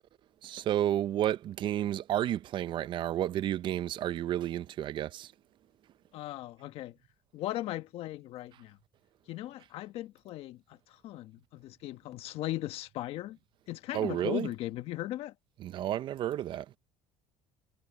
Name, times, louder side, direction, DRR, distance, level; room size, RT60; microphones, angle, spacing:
voice 1, 0.4-5.3 13.9-14.5 15.6-16.7, right 12 dB, 45° right, 0.6 m, -31 dB
voice 2, 6.1-6.9 7.3-8.8 9.3-13.4 13.7-15.3, left 15 dB, 60° left, 1.3 m, -38 dB
cardioid pair, 125°, 11 cm